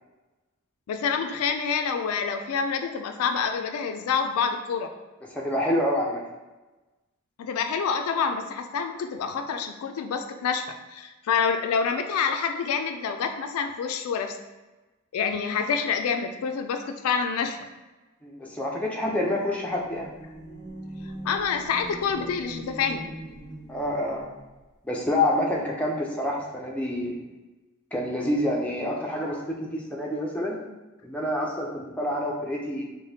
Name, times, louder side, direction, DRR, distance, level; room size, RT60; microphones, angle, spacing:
voice 1, 0.9-4.9 7.4-10.6 10.9-14.4 15.1-17.6 21.2-23.1, left 6 dB, 80° left, 6 dB, 0.3 m, -27 dB
voice 2, 5.2-6.2 18.2-20.1 23.7-24.3 24.8-27.2 27.9-30.6 31.0-32.8, left 1 dB, 5° left, -2 dB, 0.4 m, -27 dB
sound 1, 19.7-24.5, right 1 dB, 50° right, 1.3 m, -41 dB
4.9 x 2.1 x 2.7 m, 1.1 s
head